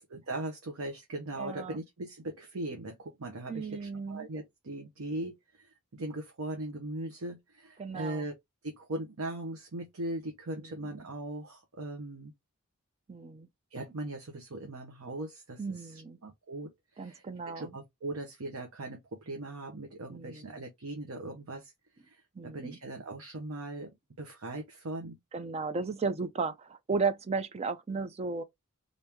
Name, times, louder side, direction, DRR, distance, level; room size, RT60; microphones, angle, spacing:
voice 1, 0.1-8.3 8.6-12.3 13.7-17.2 17.5-21.7 22.0-23.9 24.2-25.2, right 2 dB, 70° right, 0.8 m, -39 dB
voice 2, 1.4-1.8 3.5-4.3 7.8-8.3 10.6-10.9 13.1-13.5 15.6-16.2 17.0-17.8 20.1-20.6 22.4-22.8 25.3-28.4, right 4 dB, 30° right, 0.4 m, -35 dB
3.5 x 2.6 x 2.8 m
head